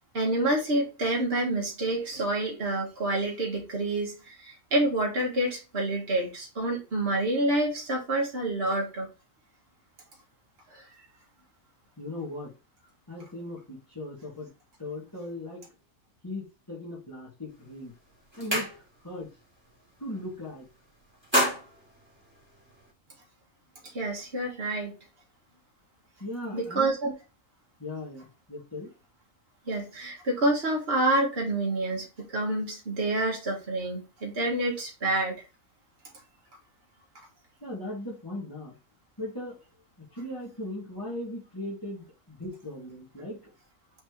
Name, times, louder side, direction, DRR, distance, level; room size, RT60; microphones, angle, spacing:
voice 1, 0.1-9.1 10.7-10.8 23.8-24.9 26.5-27.1 29.7-35.4, right 1 dB, 45° right, -1 dB, 2.0 m, -28 dB
voice 2, 12.0-12.5 13.1-14.5 14.8-15.6 16.2-17.9 18.4-19.3 20.0-20.7 26.2-26.9 27.8-28.9 37.6-38.7 39.2-39.6 40.0-43.4, left 1 dB, 15° left, -9 dB, 2.7 m, -38 dB
sound 1, 17.5-17.7 18.1-19.2 19.6-19.8 20.1-20.7 21.0-22.9, equal, 10° right, 3.2 m, -30 dB
6.2 x 4.6 x 3.3 m, 0.30 s
omnidirectional pair, 1.4 m